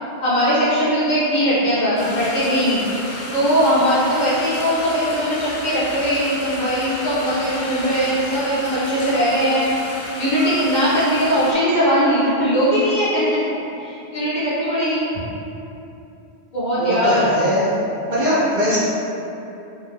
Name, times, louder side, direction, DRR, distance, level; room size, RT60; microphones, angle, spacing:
voice 1, 0.2-2.8 3.3-9.7 10.2-13.2 13.8-15.0 16.5-17.3, equal, 45° left, -11 dB, 0.8 m, -20 dB
sound 1, 2.0-11.5, left 1 dB, 85° left, 0.9 m, -32 dB
voice 2, 16.8-17.7 18.1-18.8, equal, 55° right, -9 dB, 0.6 m, -20 dB
2.6 x 2.2 x 3.3 m, 2.9 s
omnidirectional pair, 1.1 m